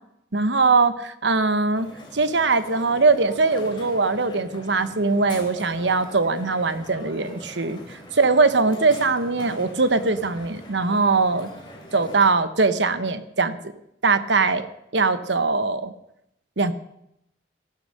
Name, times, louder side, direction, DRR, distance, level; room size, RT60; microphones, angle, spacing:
voice 1, 0.3-1.9 2.1-7.8 8.1-11.5 11.9-13.6 14.0-14.7 14.9-15.9 16.6-16.7, right 3 dB, 70° right, 12 dB, 1.1 m, -21 dB
Crowd, 1.7-12.3, left 1 dB, 25° left, 3.5 m, -42 dB
15.0 x 12.0 x 6.6 m, 0.81 s
head